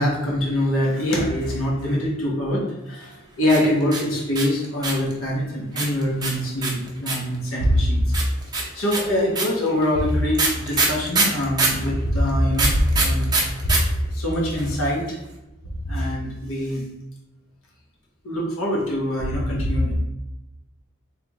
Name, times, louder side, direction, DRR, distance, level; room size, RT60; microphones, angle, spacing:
voice 1, 0.0-8.1 8.7-13.3 14.1-15.2 15.8-16.8 18.2-19.9, equal, 80° left, -4 dB, 1.1 m, -23 dB
sound 1, 3.4-5.1 5.8-7.4 8.1-11.8 12.5-13.8 14.1-14.2 14.3-14.8, right 3 dB, 20° right, 0.6 m, -23 dB
3.6 x 3.4 x 3.0 m, 0.97 s
head